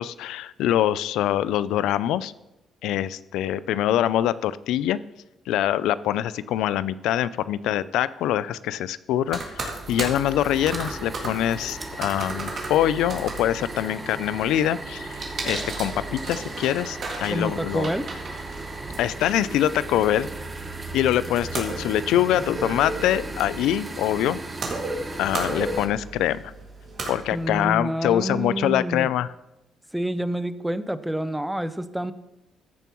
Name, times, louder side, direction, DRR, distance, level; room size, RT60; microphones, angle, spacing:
voice 1, 0.0-2.3 2.8-5.0 5.5-17.9 19.0-20.3 20.9-24.4 25.2-26.4 27.1-29.3, left 12 dB, 90° left, 17 dB, 0.3 m, -24 dB
sound 1, 9.3-27.6, right 3 dB, 55° right, 2.2 m, -36 dB
sound 2, 9.6-25.9, right 2 dB, 25° right, 1.2 m, -37 dB
voice 2, 17.3-18.1 27.3-29.1 29.9-32.1, right 1 dB, 5° right, 13 dB, 0.5 m, -28 dB
14.0 x 7.0 x 3.0 m, 0.95 s
cardioid pair, 90°, 0 cm